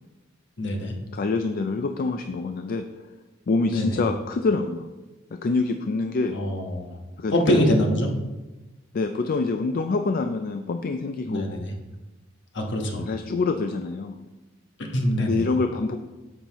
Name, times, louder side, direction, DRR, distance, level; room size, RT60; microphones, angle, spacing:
voice 1, 0.6-0.9 3.7-4.0 6.3-7.0 7.3-8.1 11.3-11.7 12.5-13.1 14.8-15.4, equal, 65° left, 2 dB, 1.2 m, -24 dB
voice 2, 1.1-2.9 3.5-4.9 5.3-6.4 7.2-7.6 8.9-11.7 13.0-14.2 15.2-16.0, left 3 dB, 45° left, 7 dB, 0.4 m, -26 dB
9.8 x 7.2 x 3.0 m, 1.1 s
head